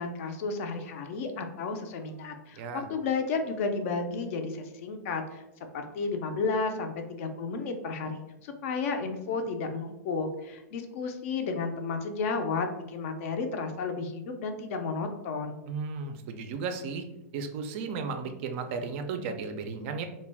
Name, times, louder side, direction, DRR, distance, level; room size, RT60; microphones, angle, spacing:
voice 1, 0.0-5.4 5.7-15.6, left 4 dB, 55° left, 6 dB, 0.4 m, -32 dB
voice 2, 2.5-2.9 15.7-17.0 17.3-20.0, right 5 dB, 45° right, 7 dB, 0.3 m, -34 dB
2.3 x 2.1 x 3.2 m, 0.93 s
supercardioid pair, 150°, 9 cm